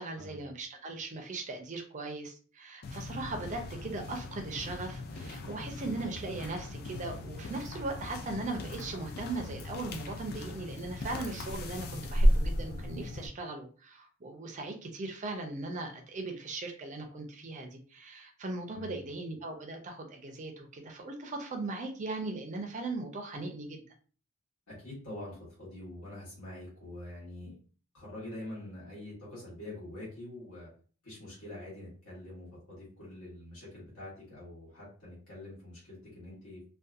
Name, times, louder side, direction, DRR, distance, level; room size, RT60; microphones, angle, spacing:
voice 1, 0.0-23.8, right 2 dB, 35° right, 3 dB, 0.4 m, -39 dB
sound 1, 2.8-13.3, equal, 45° left, 0.3 m, -34 dB
voice 2, 18.7-19.0 24.7-27.5 27.9-30.7 31.0-36.7, left 1 dB, 75° left, -7 dB, 1.2 m, -45 dB
2.6 x 2.2 x 2.4 m, 0.40 s
head